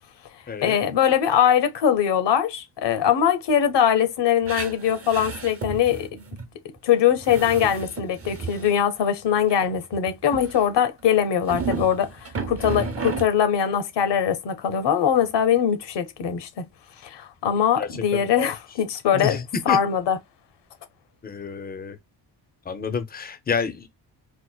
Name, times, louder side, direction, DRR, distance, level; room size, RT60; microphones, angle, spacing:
voice 1, 0.6-6.1 6.8-16.6 17.0-19.4 19.7-20.2, left 9 dB, 75° left, 0.9 m, -22 dB
sound 1, 4.4-6.5 6.8-6.9 7.1-8.8 9.5-10.7 11.5-13.3, right 5 dB, 30° right, 0.8 m, -33 dB
voice 2, 17.8-18.5 19.1-19.8 21.2-22.0 22.7-23.9, left 6 dB, 20° left, 0.5 m, -29 dB
4.5 x 2.4 x 2.2 m
wide cardioid pair, 155°, 43 cm